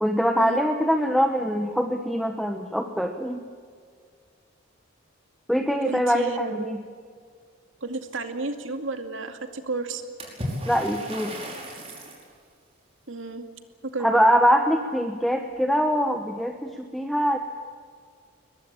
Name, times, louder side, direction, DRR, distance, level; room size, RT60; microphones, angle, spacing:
voice 1, 0.0-3.4 5.5-6.8 10.7-11.3 14.0-17.4, equal, ahead, 5 dB, 1.1 m, -23 dB
voice 2, 5.8-6.7 7.8-10.0 13.1-13.4 13.8-14.2, right 3 dB, 70° right, 7 dB, 2.3 m, -32 dB
Water / Splash splatter, 10.2-12.3, equal, 30° right, 5.3 m, -35 dB
22.0 x 21.5 x 8.8 m, 2.1 s
head